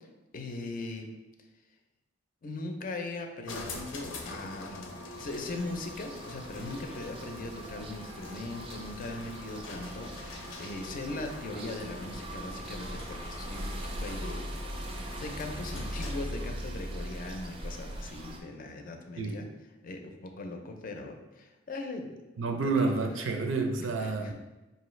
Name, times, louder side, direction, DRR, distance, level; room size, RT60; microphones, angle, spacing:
voice 1, 0.3-1.1 2.4-13.7 14.0-19.5 19.8-22.2 22.6-22.8 23.2-23.3 24.0-24.3, left 2 dB, 45° left, 4 dB, 0.5 m, -40 dB
sound 1, 3.5-16.4, left 2 dB, 85° left, 0.6 m, -44 dB
sound 2, 5.1-18.4, right 1 dB, 30° right, 0.4 m, -41 dB
voice 2, 22.4-24.3, right 3 dB, 85° right, 4 dB, 0.5 m, -29 dB
4.6 x 2.7 x 3.1 m, 1.1 s
head